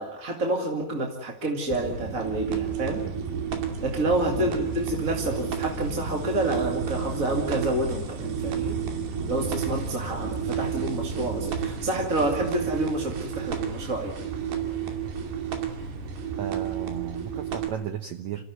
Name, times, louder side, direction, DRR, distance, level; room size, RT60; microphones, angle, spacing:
voice 1, 0.0-3.0 3.8-8.8 9.3-14.1, right 1 dB, 25° right, 2 dB, 2.1 m, -28 dB
sound 1, 1.7-17.7, right 7 dB, 90° right, 4.5 m, -31 dB
voice 2, 16.4-18.4, right 9 dB, 65° right, 9 dB, 1.9 m, -34 dB
27.5 x 14.5 x 9.4 m, 0.71 s
omnidirectional pair, 4.3 m